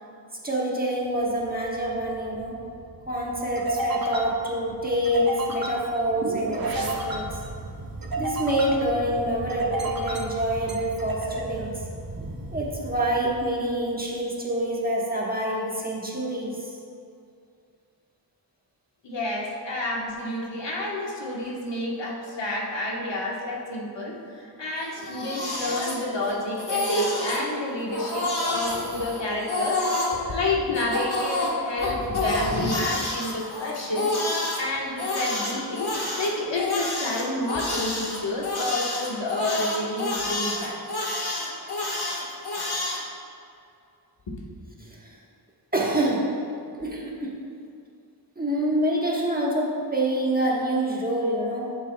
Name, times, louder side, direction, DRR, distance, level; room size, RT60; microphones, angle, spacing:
voice 1, 0.4-2.6 3.1-7.4 8.2-11.8 12.1-16.7 44.8-45.1 45.7-46.4 46.8-47.4 48.4-51.8, right 1 dB, 20° right, -4 dB, 1.3 m, -26 dB
sound 1, 1.2-14.0, right 2 dB, 55° right, 1.1 m, -33 dB
voice 2, 19.0-29.9 30.3-35.9 36.2-40.8 44.3-44.4, left 1 dB, 85° left, -3 dB, 1.4 m, -29 dB
Crying sobbing, 24.8-26.3 26.6-27.4 27.9-30.1 30.7-34.6 35.0-43.0, left 2 dB, 60° left, 1.6 m, -29 dB
12.5 x 7.3 x 2.3 m, 2.5 s
wide cardioid pair, 105°, 42 cm